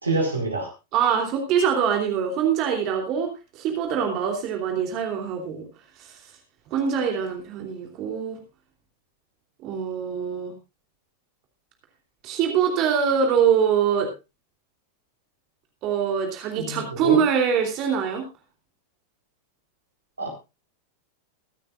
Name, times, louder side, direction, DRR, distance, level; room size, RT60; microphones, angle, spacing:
voice 1, 0.0-0.7 16.6-17.2 20.2-20.3, right 2 dB, 80° right, 1 dB, 4.6 m, -26 dB
voice 2, 0.9-5.6 6.0-6.2 6.7-8.4 9.6-10.5 12.2-14.1 15.8-18.2, right 7 dB, 40° right, 3 dB, 3.2 m, -24 dB
23.5 x 9.1 x 2.5 m, 0.27 s
figure-of-eight pair, 90°, 0 cm